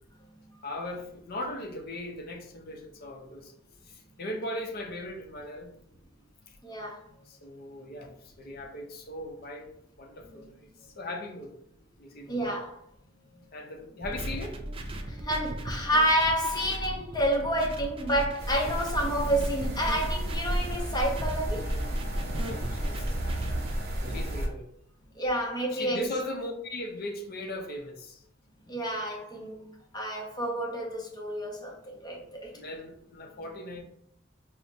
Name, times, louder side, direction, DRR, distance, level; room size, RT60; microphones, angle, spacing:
voice 1, 0.6-3.5 3.8-5.8 7.3-9.7 10.0-10.5 10.8-11.5 12.0-12.5 13.5-14.6 18.7-18.8 22.5-23.5 24.1-24.7 25.7-28.2 32.5-33.8, left 1 dB, 50° left, 3 dB, 0.6 m, -39 dB
voice 2, 6.6-7.0 10.3-10.5 12.2-12.8 15.1-21.7 25.2-26.1 28.7-32.5, equal, 20° left, -1 dB, 0.8 m, -29 dB
sound 1, 14.0-23.8, right 1 dB, 30° right, 0.4 m, -38 dB
sound 2, 18.4-24.5, equal, 55° right, 0.7 m, -32 dB
5.6 x 2.1 x 2.6 m, 0.71 s
head